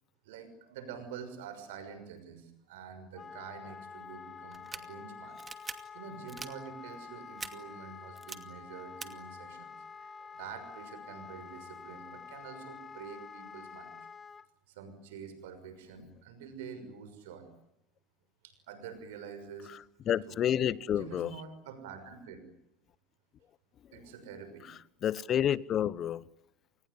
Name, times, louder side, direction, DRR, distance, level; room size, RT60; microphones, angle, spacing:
voice 1, 0.2-5.4 5.9-9.7 10.0-13.9 14.7-17.5 18.4-19.7 20.1-20.4 20.9-22.4 23.9-24.7, right 6 dB, 85° right, 6.1 m, -47 dB
Wind instrument woodwind instrument, 3.1-14.5, left 5 dB, 30° left, 1.7 m, -48 dB
sound 1, 4.5-4.8 5.4-5.7 6.3-6.5 7.4-7.5 8.2-8.4 9.0-9.1, right 4 dB, 25° right, 2.5 m, -41 dB
voice 2, 20.1-21.3 25.0-26.2, left 10 dB, 45° left, 1.0 m, -29 dB
28.5 x 19.5 x 9.8 m
supercardioid pair, 95°, 0 cm